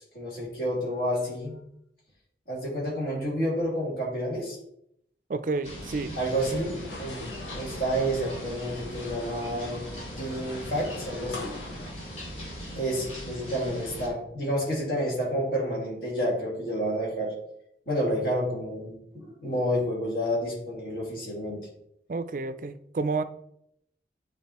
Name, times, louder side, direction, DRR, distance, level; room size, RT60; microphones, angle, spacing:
voice 1, 0.0-1.6 2.5-4.6 6.1-9.8 10.2-11.6 12.7-17.3 17.9-21.6, equal, 60° left, 2.8 m, -29 dB
voice 2, 5.3-6.2 22.1-23.2, right 3 dB, 45° right, 0.4 m, -30 dB
sound 1, 5.6-14.1, equal, 35° left, 2.7 m, -40 dB
sound 2, 6.3-11.9, left 2 dB, 90° left, 1.5 m, -42 dB
9.3 x 3.7 x 4.2 m
head